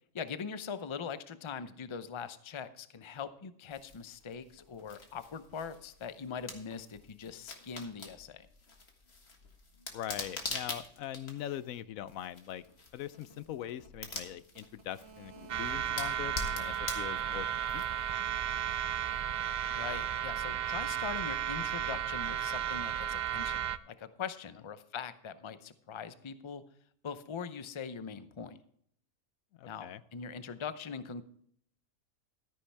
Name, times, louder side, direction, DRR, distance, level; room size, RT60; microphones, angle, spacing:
voice 1, 0.1-8.5 19.8-26.6 27.0-28.6 29.7-31.2, left 6 dB, 30° left, 12 dB, 0.5 m, -42 dB
sound 1, 3.7-18.3, left 3 dB, 50° left, 1.9 m, -45 dB
voice 2, 9.9-12.6 12.9-15.3 15.6-17.5 17.7-17.8 29.6-30.0, left 11 dB, 85° left, 16 dB, 1.0 m, -41 dB
sound 2, 13.0-20.9, right 5 dB, 55° right, 2.0 m, -57 dB
sound 3, 15.5-23.8, right 9 dB, 80° right, 0.4 m, -34 dB
13.5 x 9.8 x 3.4 m, 0.62 s
omnidirectional pair, 1.4 m